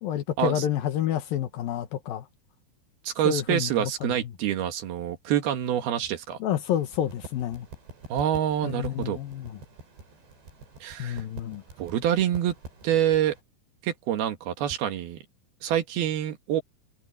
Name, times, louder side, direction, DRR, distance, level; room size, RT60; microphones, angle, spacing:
voice 1, 0.0-2.3 3.2-3.9 6.4-7.7 8.6-9.6 11.0-11.6, left 10 dB, 70° left, 2.6 m, -29 dB
voice 2, 3.0-6.4 8.1-9.2 10.8-11.2 11.8-12.5 12.8-13.3 13.8-15.2 15.6-16.6, right 10 dB, 70° right, 3.3 m, -26 dB
sound 1, 6.6-13.4, right 3 dB, 85° right, 10.5 m, -46 dB
omnidirectional pair, 4.9 m